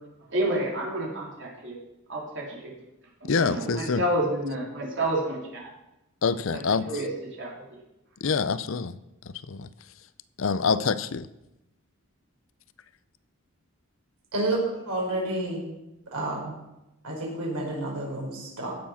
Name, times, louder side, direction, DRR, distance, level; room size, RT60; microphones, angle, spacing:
voice 1, 0.3-1.8 2.1-2.7 3.2-5.7 6.5-7.1 7.4-7.8, right 1 dB, 55° right, 3.5 m, -29 dB
voice 2, 3.3-4.0 6.2-6.9 8.2-9.0 9.3-9.7 10.4-11.3, left 5 dB, 60° left, 0.5 m, -26 dB
voice 3, 14.9-15.6 16.1-16.6 17.0-18.8, right 1 dB, 85° right, 4.8 m, -30 dB
15.5 x 7.2 x 5.7 m
head